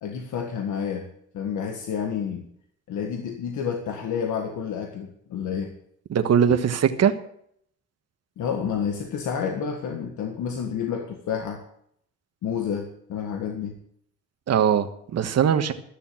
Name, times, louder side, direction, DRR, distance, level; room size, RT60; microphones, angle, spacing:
voice 1, 0.0-1.1 1.3-2.5 2.9-5.7 8.4-11.6 12.4-13.8, left 7 dB, 75° left, 3 dB, 1.6 m, -29 dB
voice 2, 6.1-7.1 14.5-15.7, right 8 dB, 55° right, 9 dB, 1.4 m, -21 dB
13.5 x 7.0 x 8.9 m, 0.69 s
cardioid pair, 90°, 30 cm